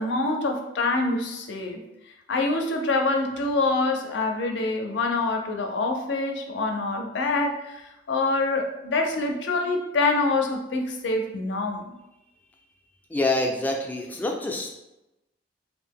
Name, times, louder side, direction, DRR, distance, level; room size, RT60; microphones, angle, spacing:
voice 1, 0.0-1.8 2.3-7.8 8.1-11.9, left 3 dB, 75° left, 3 dB, 0.4 m, -25 dB
voice 2, 13.1-14.7, left 2 dB, 10° left, 1 dB, 0.3 m, -26 dB
2.6 x 2.0 x 3.5 m, 0.93 s
head